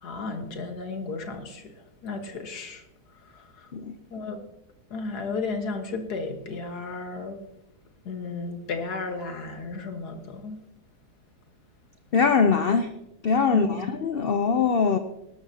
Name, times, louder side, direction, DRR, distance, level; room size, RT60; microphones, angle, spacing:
voice 1, 0.0-1.7 2.0-2.8 3.3-3.7 4.1-4.4 4.9-7.4 8.1-10.6 13.5-13.9, left 3 dB, 75° left, 5 dB, 2.0 m, -34 dB
voice 2, 12.1-12.9 13.2-15.0, left 5 dB, 55° left, 8 dB, 0.6 m, -22 dB
19.5 x 12.0 x 2.9 m, 0.87 s
omnidirectional pair, 1.7 m